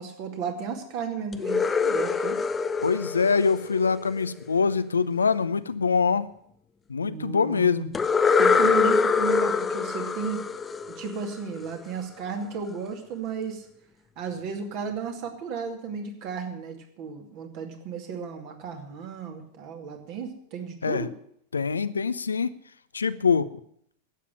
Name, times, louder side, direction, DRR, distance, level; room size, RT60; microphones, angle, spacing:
voice 1, 0.0-2.4 7.0-8.0 8.4-10.4 11.0-13.7 14.2-21.1, right 6 dB, 45° right, 4 dB, 2.5 m, -34 dB
sound 1, 1.3-4.3 7.9-11.7, left 5 dB, 15° left, 0.7 m, -24 dB
voice 2, 2.8-6.3 6.9-7.9 20.8-21.1 21.5-22.5 22.9-23.5, left 5 dB, 75° left, 14 dB, 0.7 m, -24 dB
12.0 x 8.5 x 9.9 m, 0.67 s
figure-of-eight pair, 90°, 0 cm